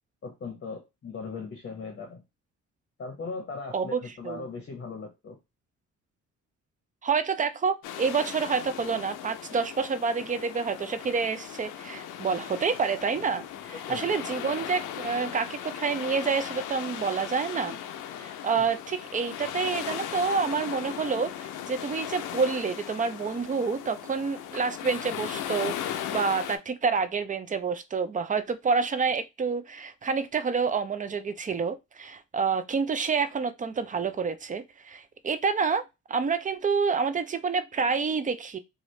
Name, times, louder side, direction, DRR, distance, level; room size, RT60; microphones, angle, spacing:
voice 1, 0.2-2.2 3.0-5.4 13.7-14.1 18.6-18.7, left 4 dB, 40° left, 0.8 m, -39 dB
voice 2, 7.0-17.8 18.2-35.8 36.1-38.6, right 5 dB, 25° right, 0.4 m, -28 dB
sound 1, 7.8-26.6, left 10 dB, 85° left, 0.5 m, -37 dB
2.7 x 2.5 x 3.1 m
cardioid pair, 90°, 30 cm